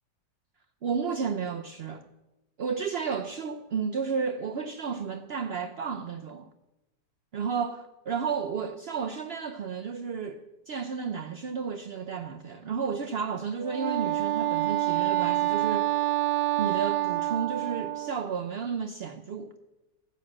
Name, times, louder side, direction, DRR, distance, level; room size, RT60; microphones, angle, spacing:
voice 1, 0.8-2.0 2.6-6.5 7.3-15.9 16.6-19.5, right 6 dB, 70° right, 0.5 m, -32 dB
Wind instrument woodwind instrument, 13.6-18.3, right 16 dB, 85° right, 1.4 m, -27 dB
15.5 x 9.6 x 7.4 m
omnidirectional pair, 1.9 m